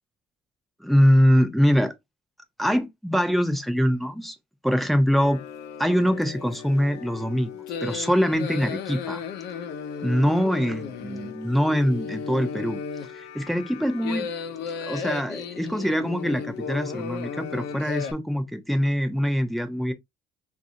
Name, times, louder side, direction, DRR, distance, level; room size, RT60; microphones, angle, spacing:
voice 1, 0.8-1.9 2.6-4.4 4.6-5.4 5.8-7.5 7.8-9.2 10.0-12.8 13.3-14.3 14.8-19.9, equal, ahead, 0.6 m, -23 dB
sound 1, 5.2-18.1, left 7 dB, 80° left, 0.7 m, -35 dB
3.9 x 2.6 x 2.7 m
cardioid pair, 110°, 17 cm